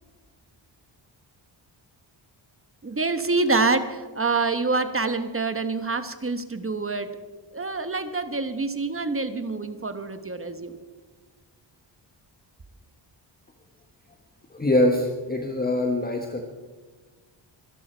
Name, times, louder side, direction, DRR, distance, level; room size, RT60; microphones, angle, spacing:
voice 1, 2.8-7.1 7.5-10.8, right 3 dB, 30° right, 10 dB, 1.1 m, -26 dB
voice 2, 14.5-16.4, left 1 dB, 20° left, 3 dB, 1.3 m, -23 dB
25.0 x 12.0 x 4.5 m, 1.4 s
wide cardioid pair, 110°, 46 cm